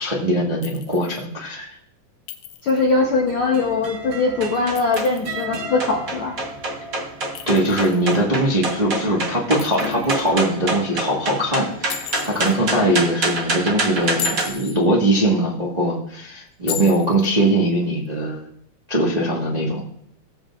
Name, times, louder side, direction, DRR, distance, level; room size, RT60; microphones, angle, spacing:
voice 1, 0.0-1.8 7.5-18.5 18.9-19.8, right 1 dB, 25° right, -4 dB, 0.8 m, -21 dB
Chink clink, 0.6-1.3 2.3-2.9 4.5-5.4 7.4-8.2 9.6-10.3 11.9-12.6 14.0-14.8 16.7-17.3, left 10 dB, 90° left, 2.3 m, -34 dB
voice 2, 2.6-6.3, left 3 dB, 65° left, -1 dB, 1.3 m, -21 dB
sound 1, 2.8-14.5, right 2 dB, 85° right, 0.7 m, -28 dB
17.5 x 7.6 x 2.5 m, 0.70 s
omnidirectional pair, 3.6 m